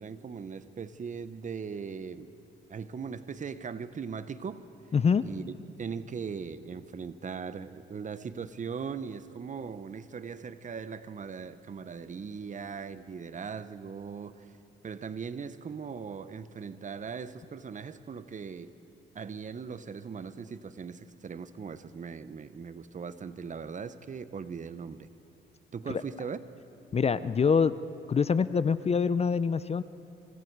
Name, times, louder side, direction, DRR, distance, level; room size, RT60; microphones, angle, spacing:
voice 1, 0.0-2.3 2.7-4.6 5.2-5.4 5.8-14.5 14.8-18.7 19.1-25.1 25.7-26.4, right 6 dB, 40° right, 13 dB, 0.9 m, -39 dB
voice 2, 4.9-5.2 25.9-26.0 26.9-27.8 28.1-29.8, left 6 dB, 30° left, 15 dB, 0.6 m, -25 dB
26.0 x 25.5 x 4.7 m, 2.7 s
cardioid pair, 90°, 20 cm